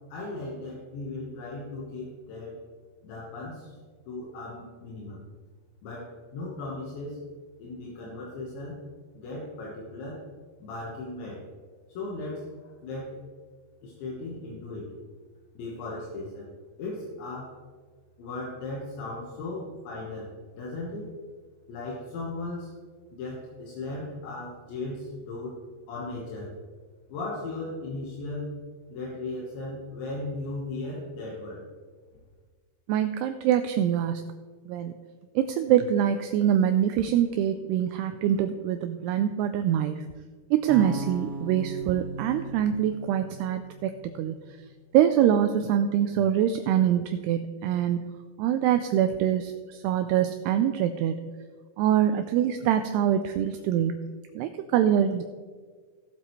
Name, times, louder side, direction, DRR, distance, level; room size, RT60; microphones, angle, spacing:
voice 1, 0.1-2.6 3.0-3.7 4.1-5.2 5.8-7.2 7.6-8.8 9.2-10.2 10.6-11.4 12.0-13.2 13.8-14.9 15.6-16.5 16.8-17.6 18.2-21.1 21.7-22.7 23.1-25.6 25.9-26.5 27.1-28.5 28.9-31.6, left 2 dB, 80° left, -4 dB, 3.7 m, -37 dB
voice 2, 32.9-34.3 34.7-34.9 35.4-40.0 40.5-43.9 44.2-44.4 44.9-48.1 48.4-51.2 51.8-54.0 54.4-55.2, right 10 dB, 85° right, 8 dB, 2.4 m, -24 dB
sound 1, 40.7-44.8, right 2 dB, 65° right, 2.8 m, -39 dB
18.5 x 7.6 x 3.2 m, 1.5 s
omnidirectional pair, 5.2 m